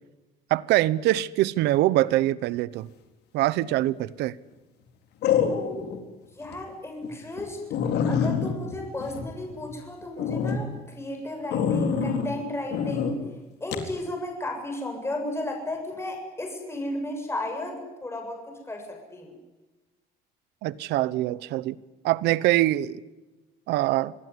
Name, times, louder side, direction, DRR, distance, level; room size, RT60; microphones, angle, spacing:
voice 1, 0.5-2.9 3.3-4.4 20.6-21.8 22.0-23.0 23.7-24.1, right 16 dB, 85° right, 1.0 m, -24 dB
sound 1, 3.6-4.0 5.2-6.0 6.4-6.5 7.0-7.1 7.4-7.5 7.7-9.7 10.2-10.6 11.5-12.3 12.7-13.1 13.7-13.9, left 7 dB, 75° left, 4.0 m, -26 dB
voice 2, 6.3-7.6 8.1-13.1 13.6-19.3, left 1 dB, 15° left, 7.3 m, -34 dB
27.0 x 20.5 x 9.9 m
cardioid pair, 110°, 17 cm